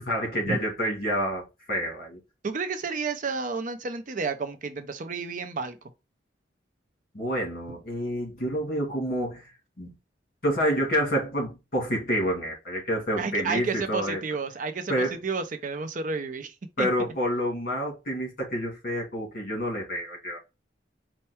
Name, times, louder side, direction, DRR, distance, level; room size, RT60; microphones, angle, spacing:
voice 1, 0.0-2.2 7.1-9.5 9.8-9.9 10.4-14.2 14.9-15.2 16.8-20.4, equal, 50° left, 2.2 m, -28 dB
voice 2, 2.4-5.8 13.2-16.9, right 4 dB, 45° right, 0.5 m, -31 dB
4.5 x 2.2 x 4.3 m
head